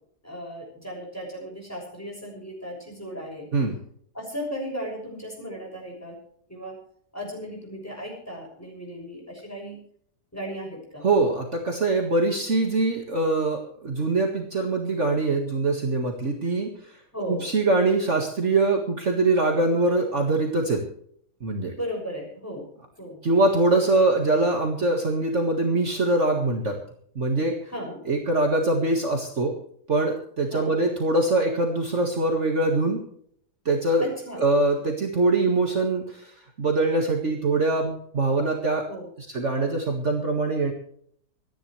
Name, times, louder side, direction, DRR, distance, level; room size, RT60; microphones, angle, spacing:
voice 1, 0.2-3.5 4.1-6.2 6.5-6.8 7.1-9.8 10.3-11.1 17.1-17.4 21.7-22.6 23.0-23.2 27.7-28.0 30.5-30.7 34.0-34.4 38.9-39.1, equal, 10° left, -1 dB, 6.6 m, -35 dB
voice 2, 11.0-16.7 17.3-20.8 21.4-21.7 23.2-26.8 27.2-27.6 28.1-29.5 29.9-33.0 33.7-34.1 34.4-38.9 39.2-40.7, right 2 dB, 45° right, 2 dB, 2.0 m, -23 dB
26.5 x 10.5 x 3.3 m, 0.65 s
omnidirectional pair, 1.7 m